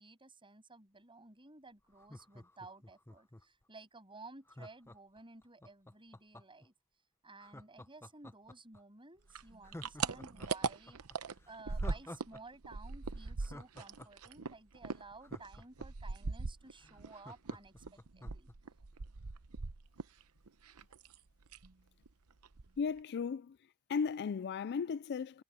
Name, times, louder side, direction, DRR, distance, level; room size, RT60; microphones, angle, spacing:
voice 1, 0.0-6.7 7.2-11.0 11.5-18.5, right 3 dB, 25° right, 7.7 m, -55 dB
Laughter, 1.9-3.6 4.5-6.7 7.4-8.8 9.2-9.3 9.6-12.4 12.7-12.8 13.2-16.1 16.5-16.6 16.8-18.5 18.9-19.0, left 1 dB, 10° left, 0.7 m, -51 dB
sound 1, 9.3-12.4 12.6-17.1 17.5-20.2 20.5-21.2 21.5-21.7 22.1-22.2 22.4-23.0, right 4 dB, 75° right, 0.9 m, -40 dB
voice 2, 22.8-23.6 23.9-25.4, left 6 dB, 50° left, 0.4 m, -35 dB
head